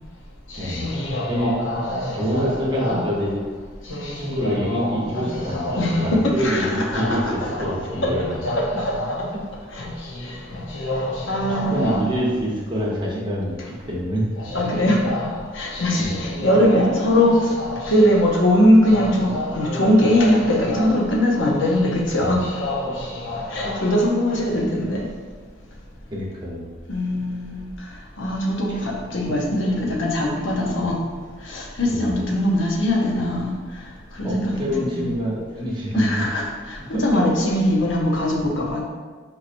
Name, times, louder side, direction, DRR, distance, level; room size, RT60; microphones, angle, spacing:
voice 1, 0.5-3.3 3.8-9.4 9.7-12.2 14.4-25.1 26.9-27.6 28.2-31.0 31.4-33.6 34.1-35.1 35.9-38.8, left 1 dB, 70° left, -1 dB, 0.7 m, -22 dB
voice 2, 2.1-3.4 4.1-8.4 11.6-13.5 13.9-14.2 16.0-16.1 16.6-16.9 22.2-22.4 23.6-23.7 24.3-24.4 26.1-26.6 28.7-28.8 29.2-29.3 31.8-32.1 34.2-36.0 36.9-37.3, equal, 25° right, -4 dB, 0.8 m, -26 dB
4.5 x 2.9 x 2.5 m, 1.4 s
head